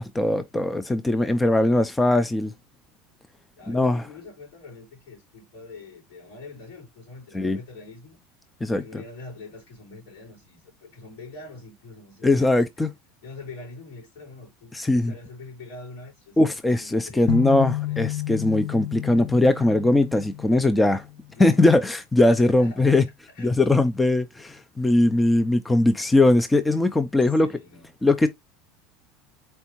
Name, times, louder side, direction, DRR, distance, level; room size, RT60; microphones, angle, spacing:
voice 1, 0.0-2.5 3.7-4.0 7.3-7.6 8.6-9.0 12.2-12.9 14.7-15.1 16.4-21.1 21.4-23.1 23.4-27.5 28.0-28.3, left 2 dB, 10° left, 0.4 m, -20 dB
voice 2, 3.5-8.2 8.7-12.5 13.2-18.0 21.3-21.9 22.4-22.9 23.3-23.6 27.4-27.9, left 3 dB, 80° left, 3.4 m, -44 dB
sound 1, 17.3-21.3, left 15 dB, 50° left, 0.8 m, -31 dB
4.4 x 3.4 x 2.9 m
supercardioid pair, 100°, 0 cm